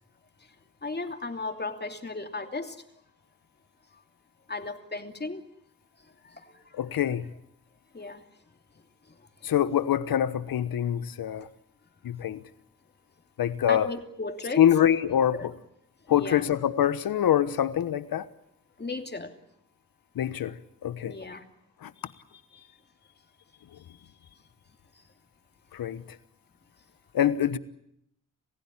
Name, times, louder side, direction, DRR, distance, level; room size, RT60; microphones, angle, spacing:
voice 1, 0.8-2.8 3.9-4.0 4.5-5.4 6.0-6.8 7.9-8.2 9.1-9.5 13.7-14.6 15.3-15.5 16.1-16.4 18.8-19.3 21.0-21.5 22.0-22.1 22.5-22.7 23.8-23.9, left 3 dB, 30° left, 2.8 m, -36 dB
voice 2, 6.7-7.3 9.4-11.5 12.0-12.4 13.4-13.9 14.6-15.5 16.1-18.3 20.1-21.2 21.8-21.9 25.7-26.0 27.1-27.6, left 10 dB, 85° left, 1.2 m, -25 dB
28.5 x 16.0 x 10.0 m
cardioid pair, 75°, 34 cm